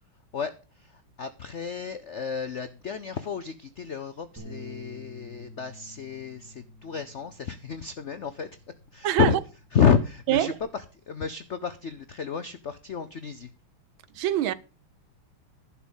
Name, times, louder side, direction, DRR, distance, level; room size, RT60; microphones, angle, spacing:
voice 1, 0.3-8.5 8.9-9.4 9.7-13.5, left 7 dB, 80° left, 0.6 m, -30 dB
Bass guitar, 4.4-10.6, left 1 dB, 10° right, 4.1 m, -49 dB
voice 2, 9.0-9.4 10.3-10.6 14.1-14.5, right 12 dB, 75° right, 1.5 m, -24 dB
11.5 x 6.0 x 7.1 m
omnidirectional pair, 2.3 m